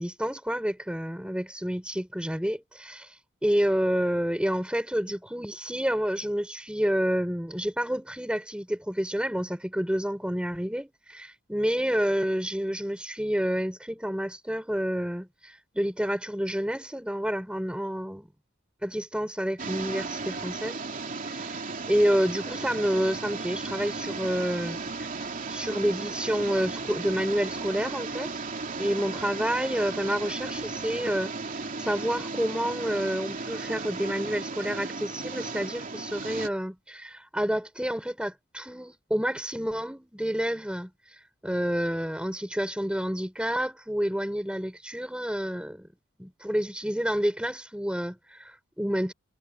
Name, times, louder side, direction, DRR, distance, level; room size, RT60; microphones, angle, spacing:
voice 1, 0.0-18.3 18.8-20.9 21.2-21.6 21.9-28.3 28.8-45.9 46.2-49.1, equal, 5° right, 4.8 m, -29 dB
sound 1, 19.6-36.5, right 3 dB, 45° right, 3.1 m, -35 dB
head